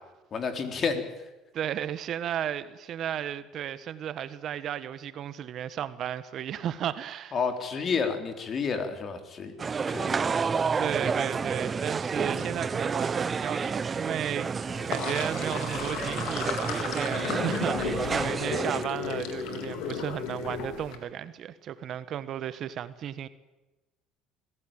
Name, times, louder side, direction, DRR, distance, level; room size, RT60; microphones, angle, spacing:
voice 1, 0.3-1.1 7.3-9.5 9.9-10.5 12.3-12.6, left 5 dB, 45° left, 3.9 m, -31 dB
voice 2, 1.5-7.3 10.7-23.3, right 10 dB, 55° right, 1.2 m, -34 dB
sound 1, 9.6-18.8, right 5 dB, 30° right, 0.7 m, -30 dB
Sink (filling or washing), 14.7-21.0, left 7 dB, 75° left, 3.4 m, -34 dB
25.0 x 16.0 x 9.1 m
supercardioid pair, 80°, 0 cm